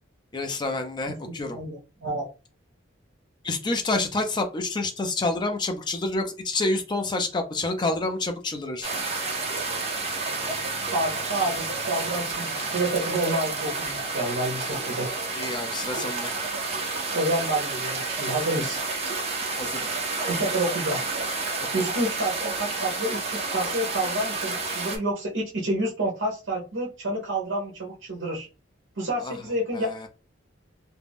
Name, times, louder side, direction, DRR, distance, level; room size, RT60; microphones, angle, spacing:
voice 1, 0.3-1.6 3.4-8.9 15.3-16.3 19.6-19.9 29.2-29.3 29.7-30.1, left 2 dB, 20° left, 5 dB, 0.4 m, -28 dB
voice 2, 1.1-2.3 10.9-15.1 17.1-18.8 20.3-21.0 21.7-28.5 29.0-30.1, right 1 dB, 70° right, -1 dB, 0.7 m, -29 dB
sound 1, 8.8-25.0, right 3 dB, 30° right, 0.6 m, -30 dB
2.4 x 2.1 x 3.4 m, 0.31 s
head